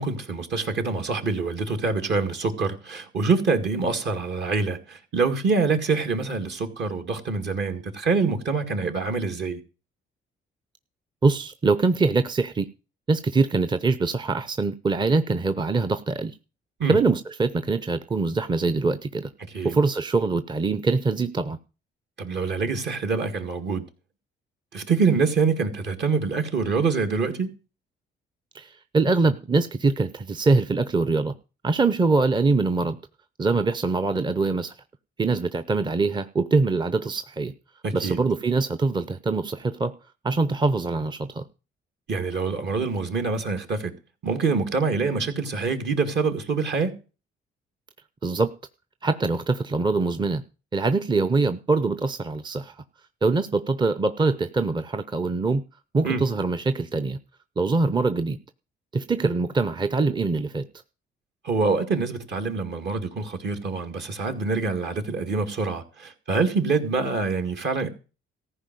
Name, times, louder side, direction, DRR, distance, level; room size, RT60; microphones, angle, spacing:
voice 1, 0.0-9.6 16.8-17.0 19.5-19.8 22.2-23.8 24.7-27.5 37.8-38.2 42.1-43.9 44.2-46.9 56.0-56.2 61.4-67.9, right 4 dB, 60° right, 2.3 m, -25 dB
voice 2, 11.2-12.7 13.1-16.3 16.9-19.3 19.6-21.6 28.5-31.3 31.6-33.0 33.4-34.7 35.2-37.5 37.9-40.0 40.2-41.4 48.2-48.5 49.0-50.4 50.7-52.8 53.2-55.6 55.9-57.2 57.6-58.4 58.9-60.7, right 3 dB, 20° right, 0.6 m, -23 dB
14.5 x 4.9 x 9.2 m
cardioid pair, 90°, 20 cm